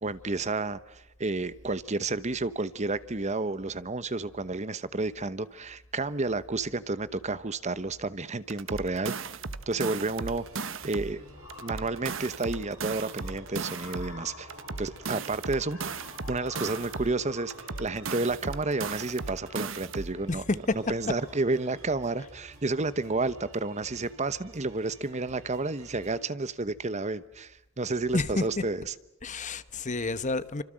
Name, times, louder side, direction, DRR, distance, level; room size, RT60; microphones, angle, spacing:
voice 1, 0.0-9.1 9.7-11.2 11.6-28.9, right 3 dB, 35° right, 1.0 m, -31 dB
sound 1, 7.7-7.8 8.1-8.3 8.6-23.5, left 3 dB, 80° left, 5.9 m, -51 dB
sound 2, 8.5-11.2 11.5-14.2 14.5-17.2 17.5-20.2, right 4 dB, 65° right, 1.2 m, -36 dB
sound 3, 10.3-26.3, right 2 dB, 90° right, 4.6 m, -54 dB
voice 2, 28.1-28.5 29.2-30.6, left 3 dB, 35° left, 1.1 m, -30 dB
29.0 x 26.0 x 7.6 m
head